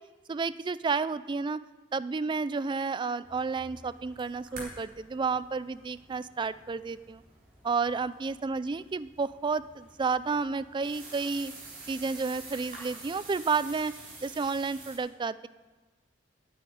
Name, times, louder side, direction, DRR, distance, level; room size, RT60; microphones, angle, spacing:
voice 1, 0.3-1.6 1.9-7.2 7.6-11.5 11.9-13.9 14.2-15.5, right 4 dB, 25° right, 16 dB, 0.3 m, -31 dB
sound 1, 3.2-15.0, right 2 dB, 50° right, 4.2 m, -48 dB
9.2 x 8.4 x 9.4 m, 1.3 s
head